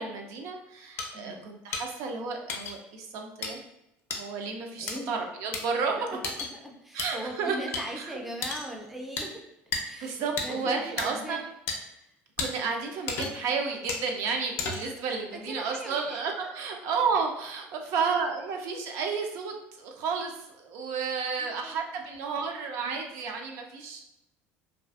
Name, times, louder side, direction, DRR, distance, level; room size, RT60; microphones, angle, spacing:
voice 1, 0.0-3.6 4.1-6.2 6.9-7.6 8.0-8.2 10.0-11.5 12.4-24.0, right 5 dB, 65° right, 3 dB, 0.4 m, -32 dB
sound 1, 1.0-1.1 1.7-1.8 2.5-2.7 3.4-3.5 4.1-4.2 4.9-5.0 5.5-5.6 6.2-6.5 7.0-7.1 7.7-7.8 8.4-8.7 9.2-9.3 9.7-9.8 10.4-10.5 11.0-11.1 11.7-11.8 12.4-12.5 13.1-13.5 13.9-14.0 14.6-15.0, left 4 dB, 55° left, 0.4 m, -32 dB
voice 2, 1.1-1.5 4.8-5.1 5.9-6.2 6.5-9.4 9.8-11.5 11.9-12.1 15.3-16.2 21.4-21.9, equal, 5° right, 0 dB, 0.4 m, -40 dB
2.4 x 2.3 x 2.3 m, 0.87 s
cardioid pair, 125°, 5 cm